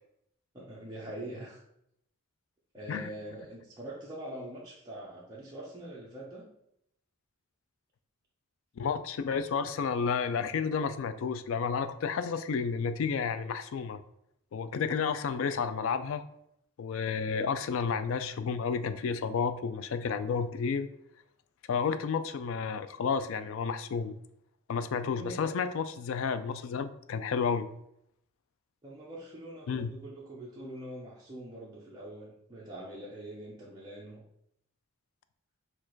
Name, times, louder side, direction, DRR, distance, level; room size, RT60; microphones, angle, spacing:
voice 1, 0.5-1.6 2.7-6.5 25.1-25.5 28.8-34.2, right 1 dB, 20° right, -6 dB, 0.7 m, -43 dB
voice 2, 8.8-14.0 14.5-16.2 16.8-20.9 21.7-24.2 24.7-27.7 29.7-29.9, left 6 dB, 65° left, 12 dB, 0.3 m, -31 dB
4.4 x 2.4 x 4.4 m, 0.76 s
head